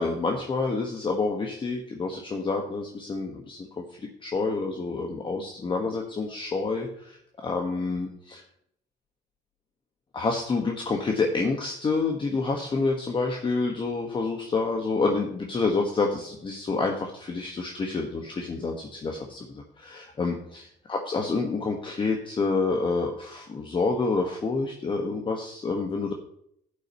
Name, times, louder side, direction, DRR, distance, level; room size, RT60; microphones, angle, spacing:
voice 1, 0.0-3.8 4.2-7.2 7.4-8.4 10.1-26.1, left 3 dB, 30° left, 2 dB, 1.4 m, -28 dB
11.5 x 8.6 x 3.0 m, 0.70 s
cardioid pair, 110°, 17 cm